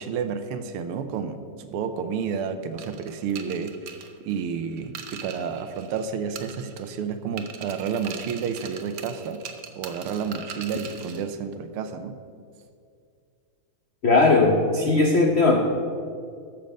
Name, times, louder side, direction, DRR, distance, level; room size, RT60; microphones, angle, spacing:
voice 1, 0.0-3.7 4.2-9.4 9.8-12.2, right 6 dB, 85° right, 9 dB, 1.7 m, -30 dB
sound 1, 2.8-6.1 6.4-7.0 7.4-11.2, right 7 dB, 60° right, 1.0 m, -41 dB
voice 2, 14.0-15.6, left 3 dB, 85° left, 2 dB, 0.5 m, -18 dB
13.0 x 7.2 x 5.3 m, 2.3 s
omnidirectional pair, 2.4 m